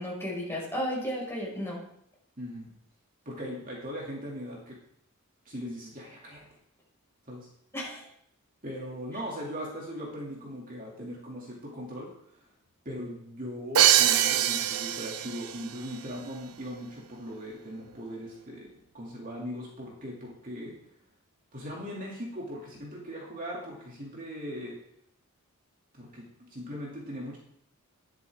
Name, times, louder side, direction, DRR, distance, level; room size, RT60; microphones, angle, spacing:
voice 1, 0.0-1.8 7.7-8.1, equal, 10° left, -5 dB, 5.3 m, -33 dB
voice 2, 2.4-2.7 3.3-4.8 5.4-6.4 7.3-7.5 8.6-12.4 12.8-18.7 18.9-20.8 21.5-24.8 25.9-27.4, equal, 40° right, -3 dB, 2.6 m, -39 dB
Crash cymbal, 13.7-15.6, right 11 dB, 85° right, 0.6 m, -23 dB
13.0 x 11.0 x 3.6 m, 0.72 s
head